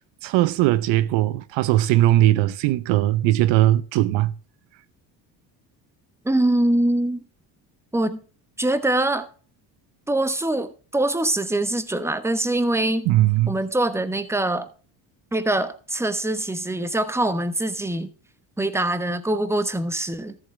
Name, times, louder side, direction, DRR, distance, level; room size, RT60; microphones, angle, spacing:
voice 1, 0.2-4.3 13.1-13.5, right 15 dB, 75° right, 0.7 m, -19 dB
voice 2, 6.2-7.2 7.9-8.2 8.6-9.3 10.1-13.1 13.5-14.7 15.3-18.1 18.6-20.4, right 1 dB, 5° right, 1.1 m, -23 dB
13.5 x 7.7 x 3.3 m
supercardioid pair, 80°, 45 cm